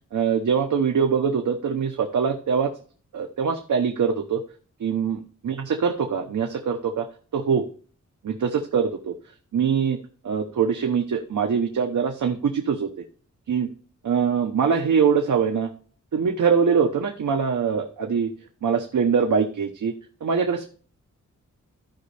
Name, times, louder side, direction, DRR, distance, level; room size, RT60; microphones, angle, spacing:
voice 1, 0.1-2.7 3.1-4.4 4.8-7.1 7.3-7.6 8.2-9.1 9.5-10.0 10.2-13.0 13.5-13.7 14.0-15.7 16.1-18.3 18.6-19.9 20.2-20.7, right 6 dB, 75° right, 3 dB, 1.0 m, -23 dB
14.5 x 5.3 x 3.3 m, 0.42 s
wide cardioid pair, 170°, 30 cm